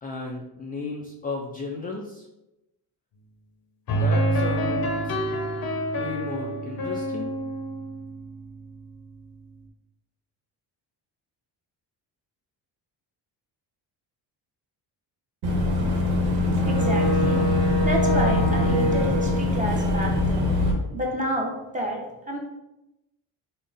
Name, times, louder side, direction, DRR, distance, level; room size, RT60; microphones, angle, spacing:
voice 1, 0.0-2.2 3.9-5.1 5.9-7.3, left 3 dB, 20° left, 0 dB, 0.3 m, -34 dB
sound 1, 3.9-8.8, right 1 dB, 55° left, 0.7 m, -27 dB
Boat Water vehicle / Engine, 15.4-20.7, left 1 dB, 90° right, 0.9 m, -22 dB
voice 2, 16.6-17.4 17.8-20.5 20.9-22.4, right 1 dB, 15° right, -1 dB, 0.9 m, -29 dB
3.6 x 2.1 x 3.9 m, 0.93 s
cardioid pair, 95°, 44 cm